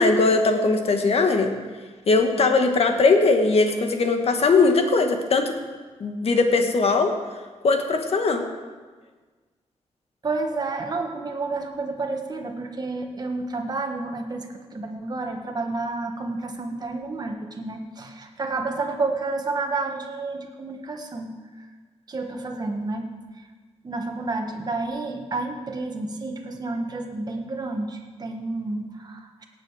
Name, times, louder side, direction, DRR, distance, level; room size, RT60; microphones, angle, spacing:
voice 1, 0.0-1.5 2.1-5.5 6.0-7.1 7.6-8.4, left 3 dB, 60° left, 5 dB, 1.3 m, -20 dB
voice 2, 10.2-21.3 22.1-23.1 23.4-23.5 23.8-29.4, right 3 dB, 35° right, 3 dB, 1.4 m, -30 dB
18.0 x 7.7 x 4.8 m, 1.4 s
wide cardioid pair, 135°, 12 cm